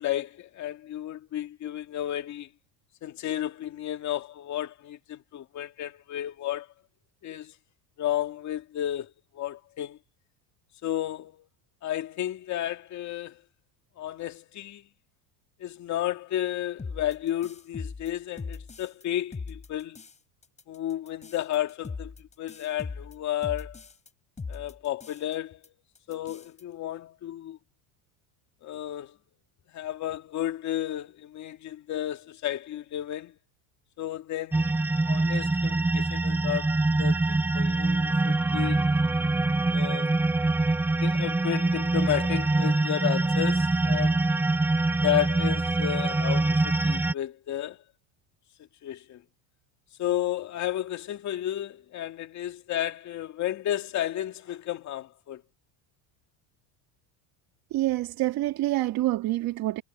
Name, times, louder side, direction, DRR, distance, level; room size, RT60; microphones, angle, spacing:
voice 1, 0.0-2.5 3.0-6.7 7.2-7.5 8.0-10.0 10.8-11.5 11.8-13.4 14.0-14.9 15.6-20.0 20.7-23.8 24.5-25.7 26.1-27.6 28.6-29.2 29.7-33.3 34.0-34.8 35.1-38.9 39.7-40.3 41.0-44.2 45.0-47.8 48.8-49.2 50.0-55.4, left 12 dB, 40° left, 2.5 m, -32 dB
sound 1, 16.8-19.0 19.3-20.2 20.4-24.1 24.4-25.3 25.6-25.7 25.9-26.6, left 4 dB, 15° left, 6.1 m, -40 dB
sound 2, 34.5-47.1, right 2 dB, 5° right, 0.4 m, -24 dB
voice 2, 57.7-59.8, right 16 dB, 50° right, 4.1 m, -27 dB
cardioid pair, 155°, 45 cm